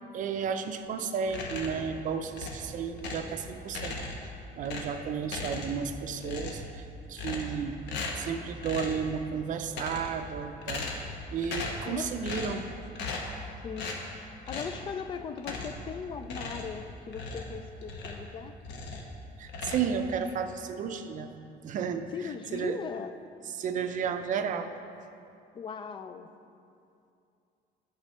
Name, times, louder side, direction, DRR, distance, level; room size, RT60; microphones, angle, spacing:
voice 1, 0.1-4.0 4.6-7.8 8.2-12.6 19.4-21.3 21.6-22.1 22.5-22.8 23.6-24.7, right 6 dB, 45° right, 8 dB, 0.5 m, -33 dB
sound 1, 1.3-1.9 2.3-3.3 3.7-4.3 4.6-5.9 6.2-6.7 7.2-7.6 7.9-8.3 8.6-9.0 9.6-10.2 10.6-11.2 11.4-11.9 12.2-12.6 12.9-13.4 13.8-14.0 14.5-14.8 15.4-15.9 16.2-18.3 18.6-19.1 19.5-20.3, left 3 dB, 75° left, 1.2 m, -37 dB
voice 2, 11.9-12.3 13.6-18.6 22.1-23.2 25.5-26.3, left 6 dB, 30° left, 10 dB, 0.3 m, -39 dB
11.5 x 6.2 x 4.2 m, 2.6 s
cardioid pair, 165°, 18 cm